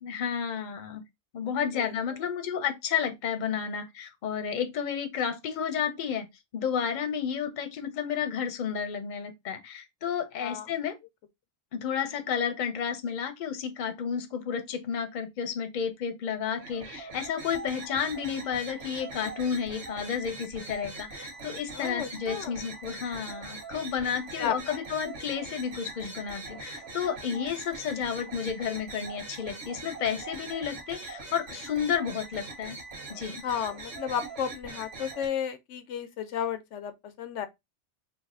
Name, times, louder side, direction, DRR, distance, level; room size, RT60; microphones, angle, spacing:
voice 1, 0.0-1.0 1.3-6.3 6.5-10.9 11.7-32.8 33.1-33.4, left 7 dB, 50° left, 0.7 m, -31 dB
sound 1, 16.6-35.3, right 3 dB, 85° right, 1.3 m, -42 dB
voice 2, 21.7-22.6 24.4-24.8 33.4-37.5, left 8 dB, 85° left, 0.9 m, -33 dB
3.2 x 2.5 x 3.5 m
omnidirectional pair, 1.2 m